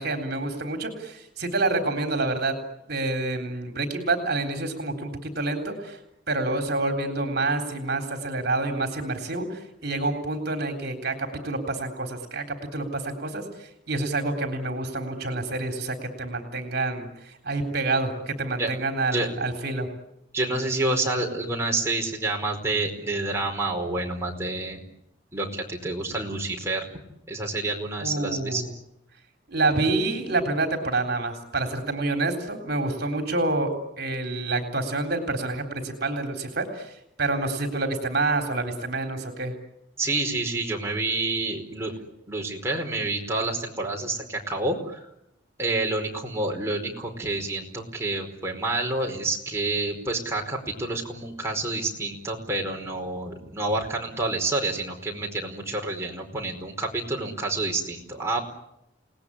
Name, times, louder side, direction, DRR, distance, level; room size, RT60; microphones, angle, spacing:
voice 1, 0.0-2.5 2.9-6.0 6.3-19.9 28.0-28.7 29.5-33.7 34.0-36.9 37.2-39.5, right 2 dB, 55° right, 5 dB, 3.8 m, -28 dB
voice 2, 20.3-24.8 25.3-26.8 27.3-28.6 40.0-41.9 42.3-45.0 45.6-58.4, right 2 dB, 15° right, 0 dB, 4.8 m, -28 dB
29.5 x 19.5 x 10.0 m, 0.81 s
head